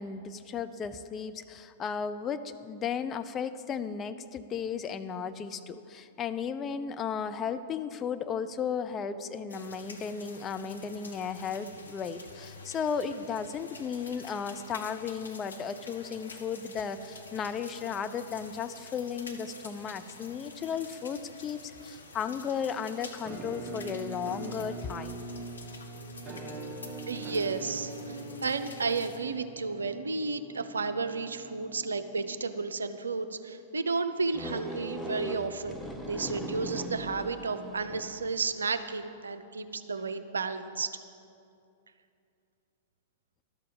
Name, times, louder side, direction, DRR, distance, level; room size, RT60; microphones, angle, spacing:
voice 1, 0.0-25.2, left 6 dB, 25° left, 10 dB, 0.5 m, -35 dB
sound 1, 9.5-29.2, left 3 dB, 75° left, 1.0 m, -49 dB
Musical instrument, 23.3-33.0, right 3 dB, 15° right, 1.4 m, -43 dB
voice 2, 27.1-41.0, right 4 dB, 75° right, 10 dB, 0.6 m, -32 dB
sound 2, 34.3-38.4, right 1 dB, ahead, 0.8 m, -39 dB
12.0 x 6.8 x 7.9 m, 2.6 s
figure-of-eight pair, 100°, 0 cm